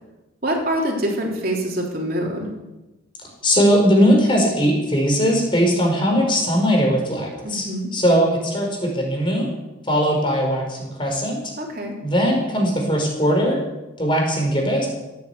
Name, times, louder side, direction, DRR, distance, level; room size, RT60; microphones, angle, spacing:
voice 1, 0.4-2.5 7.4-7.9 11.6-12.0, right 1 dB, 45° right, -1 dB, 3.5 m, -25 dB
voice 2, 3.4-7.7 7.9-9.5 9.9-11.4 12.0-13.6 14.0-14.9, equal, 25° left, 1 dB, 4.9 m, -19 dB
16.5 x 10.5 x 8.4 m, 1.0 s
head